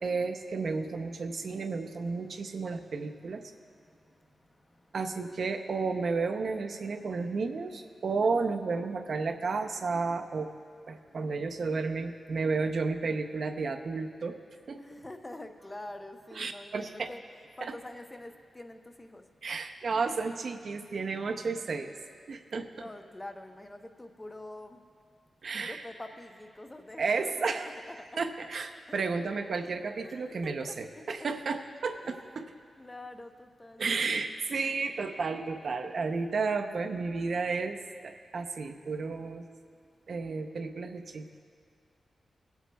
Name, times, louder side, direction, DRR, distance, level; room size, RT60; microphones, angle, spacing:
voice 1, 0.0-3.4 4.9-10.5 10.9-14.4 14.7-14.8 16.4-17.1 17.6-17.7 19.4-21.9 22.3-22.7 25.4-25.8 27.0-27.7 28.2-32.4 33.8-37.8 38.0-39.4 40.1-41.3, right 4 dB, 55° right, 6 dB, 0.6 m, -32 dB
voice 2, 14.8-17.2 17.6-19.2 22.7-24.8 25.6-27.5 27.9-28.0 28.9-29.2 30.0-30.7 32.0-34.1 35.6-36.2, left 1 dB, 15° left, 6 dB, 0.5 m, -46 dB
24.0 x 8.1 x 2.2 m, 2.2 s
wide cardioid pair, 160°, 0 cm